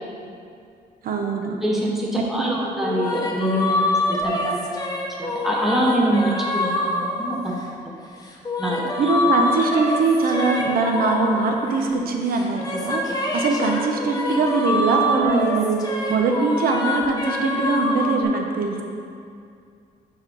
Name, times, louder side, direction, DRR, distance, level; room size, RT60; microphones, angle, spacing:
voice 1, 1.0-1.6 2.2-2.6 9.0-13.0 13.3-18.8, right 3 dB, 65° right, 2 dB, 0.8 m, -22 dB
voice 2, 1.6-4.6 5.2-7.5 8.6-8.9, right 1 dB, ahead, -4 dB, 0.9 m, -24 dB
sound 1, 2.8-7.8 8.3-12.0 12.3-18.2, left 1 dB, 25° left, 0.8 m, -26 dB
4.9 x 4.7 x 5.5 m, 2.4 s
cardioid pair, 120°, 16 cm